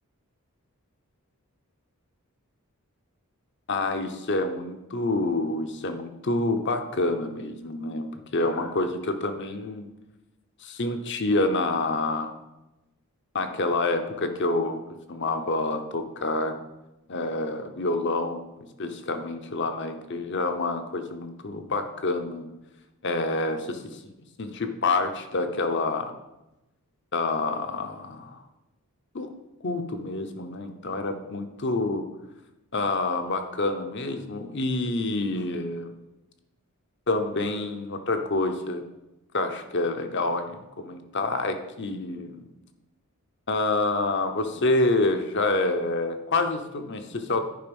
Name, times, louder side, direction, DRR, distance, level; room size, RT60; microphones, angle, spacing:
voice 1, 3.7-8.1 8.3-9.9 10.6-12.3 13.3-14.8 15.1-16.6 17.1-18.4 18.8-22.5 23.0-24.0 24.4-26.1 27.1-28.4 29.1-29.3 29.6-32.0 32.7-35.9 37.1-38.9 39.3-42.5 43.5-47.4, left 2 dB, 50° left, 7 dB, 0.8 m, -27 dB
10.5 x 5.2 x 5.3 m, 0.96 s
head